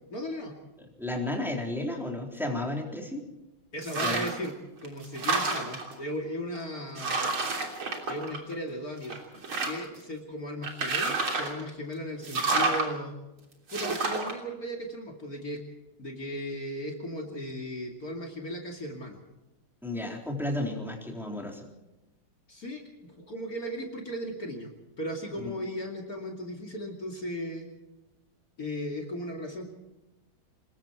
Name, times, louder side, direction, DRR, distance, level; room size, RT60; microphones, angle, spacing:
voice 1, 0.1-0.6 3.7-4.5 4.8-7.3 8.1-9.2 9.6-13.2 13.7-15.6 16.0-19.2 22.5-24.7 25.0-27.7 28.6-29.6, equal, 45° left, 1 dB, 3.0 m, -36 dB
voice 2, 1.0-3.3 4.0-4.3 19.8-21.7 25.4-25.5, left 1 dB, ahead, 0 dB, 3.7 m, -33 dB
sound 1, 3.8-4.5 4.9-5.9 6.6-6.7 7.0-8.7 9.1-10.0 10.6-11.6 12.2-12.9 13.7-14.3, right 3 dB, 80° right, 4.1 m, -29 dB
27.5 x 21.0 x 4.5 m, 0.99 s
omnidirectional pair, 2.2 m